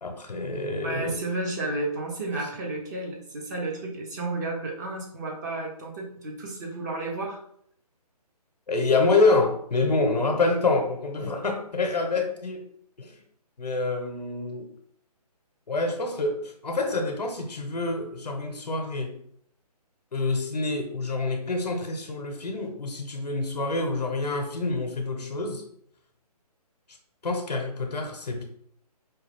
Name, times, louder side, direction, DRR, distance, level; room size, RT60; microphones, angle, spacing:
voice 1, 0.0-1.2 8.7-12.7 13.0-13.2 13.6-14.7 15.7-19.2 20.1-25.6 27.2-28.4, left 3 dB, 85° left, 3 dB, 0.7 m, -27 dB
voice 2, 0.8-7.4, right 2 dB, 25° right, 0 dB, 0.7 m, -32 dB
4.6 x 2.3 x 3.3 m, 0.68 s
hypercardioid pair, 155°, 20 cm